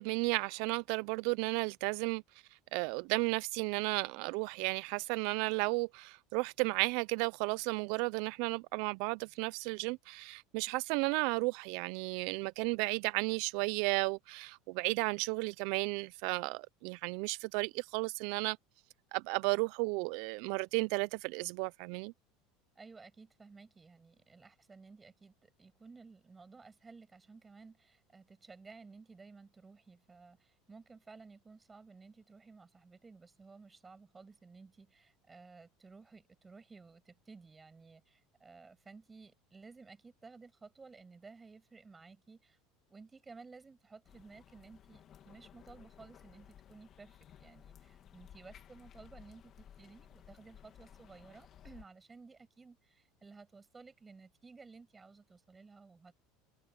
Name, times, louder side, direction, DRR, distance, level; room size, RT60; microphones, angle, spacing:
voice 1, 0.0-2.2 2.7-18.6 19.1-22.1, right 26 dB, 55° right, 0.3 m, -33 dB
voice 2, 22.7-42.6 42.9-56.1, right 4 dB, 10° right, 5.9 m, -55 dB
sound 1, 44.0-51.8, left 9 dB, 30° left, 2.0 m, -57 dB
cardioid pair, 165°, 0 cm